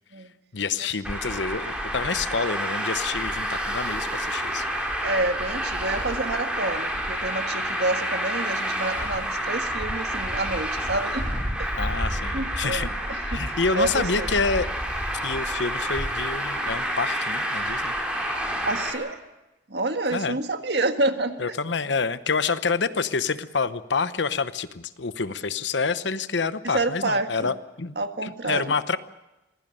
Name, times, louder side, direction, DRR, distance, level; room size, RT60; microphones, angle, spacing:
voice 1, 0.5-4.6 11.8-14.7 15.2-17.9 20.1-20.4 21.4-27.9 28.2-29.0, left 4 dB, 80° left, 13 dB, 0.9 m, -28 dB
Traffic noise roadway noise, 1.0-18.9, equal, 5° right, 4.1 m, -29 dB
voice 2, 5.0-11.7 12.3-14.3 18.6-19.2 19.7-21.3 26.7-27.5 27.9-28.7, right 2 dB, 70° right, 7 dB, 1.7 m, -28 dB
24.0 x 16.5 x 8.9 m, 1.0 s
head